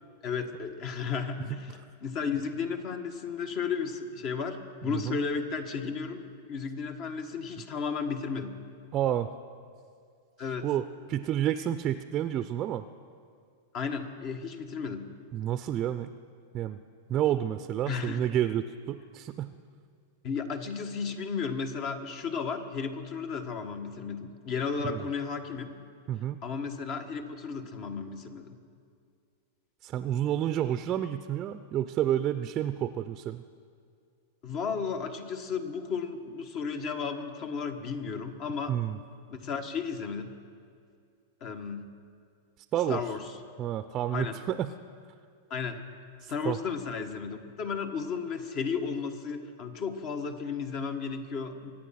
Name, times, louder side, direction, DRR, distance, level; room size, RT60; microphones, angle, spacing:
voice 1, 0.2-8.6 10.4-10.7 13.7-15.1 17.9-18.2 20.2-25.7 26.4-28.6 34.4-38.7 39.3-40.4 41.4-41.9 42.9-43.3 44.1-44.4 45.5-45.8 46.3-51.7, left 5 dB, 45° left, 7 dB, 1.5 m, -34 dB
voice 2, 8.9-9.3 10.6-12.8 15.3-16.1 16.5-16.8 17.1-19.5 24.8-25.1 26.1-26.4 29.8-33.4 38.7-39.0 42.7-43.0 43.6-44.7 46.2-46.6, right 11 dB, 35° right, 11 dB, 0.5 m, -30 dB
24.5 x 9.0 x 5.9 m, 2.3 s
hypercardioid pair, 105°, 0 cm